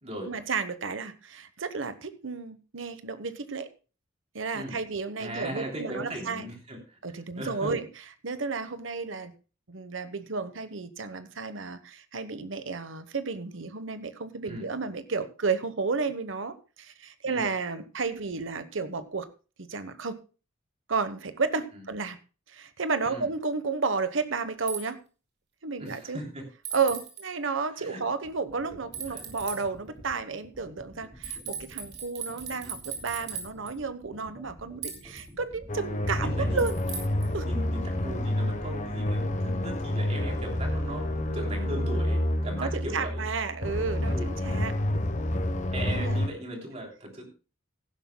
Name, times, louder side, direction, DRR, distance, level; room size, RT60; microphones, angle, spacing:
voice 1, 0.3-3.7 4.3-6.4 7.0-7.9 8.2-9.3 9.7-19.3 19.6-20.2 20.9-22.2 22.5-25.0 25.6-26.2 26.7-36.8 37.3-37.5 42.6-44.7 45.9-46.2, right 4 dB, 70° right, 1.0 m, -32 dB
voice 2, 5.2-7.0 7.4-7.7 14.4-14.7 17.2-17.5 21.7-21.8 23.0-23.3 25.8-26.4 27.8-28.0 29.1-29.2 36.2-36.7 37.4-43.3 44.1-44.3 45.7-47.2, right 1 dB, 30° right, 3.2 m, -38 dB
sound 1, 24.7-24.8 26.6-27.2 28.9-29.6 31.2-33.7 34.8-35.2 36.6-37.3, right 7 dB, 55° right, 2.7 m, -37 dB
sound 2, 28.2-43.0, equal, ahead, 2.4 m, -49 dB
sound 3, 35.7-46.3, left 1 dB, 35° left, 1.0 m, -29 dB
16.5 x 11.5 x 2.2 m
head